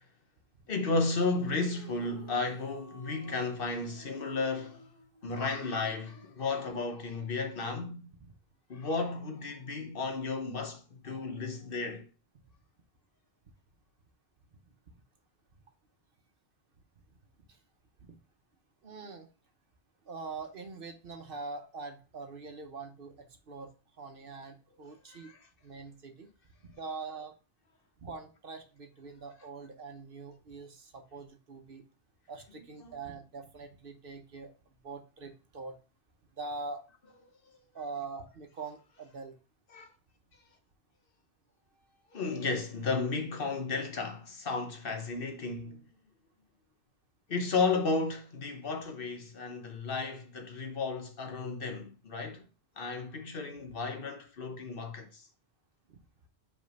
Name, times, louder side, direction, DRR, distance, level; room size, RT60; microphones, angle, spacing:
voice 1, 0.7-4.8 5.2-8.1 8.7-12.1 25.1-25.4 32.8-32.9 39.7-39.9 42.1-45.8 47.3-52.4 52.8-55.2, left 3 dB, 55° left, 1.0 m, -33 dB
sound 1, 1.1-6.4, right 1 dB, 35° left, 2.3 m, -55 dB
voice 2, 18.8-19.3 20.1-23.7 24.0-25.3 25.6-26.3 26.6-27.3 28.0-31.9 32.3-34.5 34.8-35.8 36.4-36.8 37.7-39.3 55.9-56.0, right 4 dB, 55° right, 1.0 m, -43 dB
5.3 x 3.5 x 5.2 m
omnidirectional pair, 1.1 m